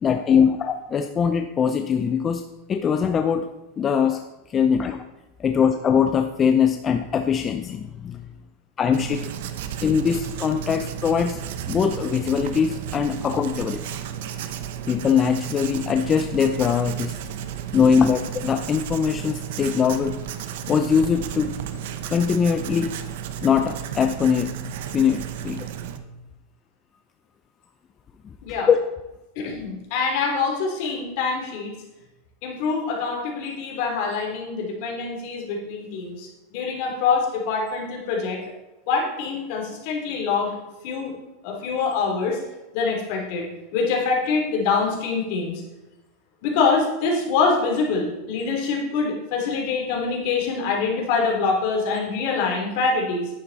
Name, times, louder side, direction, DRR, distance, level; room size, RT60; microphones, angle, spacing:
voice 1, 0.0-2.4 2.7-3.5 3.8-4.2 4.5-5.0 5.4-8.2 8.8-9.3 9.8-11.4 11.7-13.8 14.9-17.2 17.7-20.2 20.7-21.5 22.1-22.9 23.4-25.7 28.7-28.8, left 7 dB, 25° left, 7 dB, 0.5 m, -22 dB
Writing, 8.9-26.0, right 9 dB, 70° right, 0.9 m, -33 dB
voice 2, 29.3-31.7 32.4-38.4 38.9-40.5 40.8-41.1 41.4-42.4 42.7-45.6 46.4-53.3, left 4 dB, 55° left, -1 dB, 3.3 m, -25 dB
11.0 x 9.3 x 4.1 m, 1.0 s
supercardioid pair, 145°, 0 cm